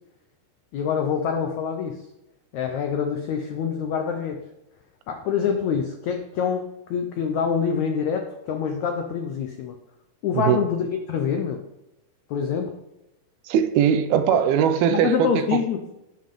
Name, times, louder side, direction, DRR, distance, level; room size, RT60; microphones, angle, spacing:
voice 1, 0.7-2.0 2.5-4.4 5.1-9.8 10.2-11.6 12.3-12.8 14.3-14.4 14.9-15.8, left 7 dB, 90° left, 4 dB, 1.6 m, -26 dB
voice 2, 13.5-15.6, right 9 dB, 80° right, 9 dB, 2.6 m, -20 dB
18.0 x 7.3 x 3.9 m, 0.94 s
omnidirectional pair, 4.5 m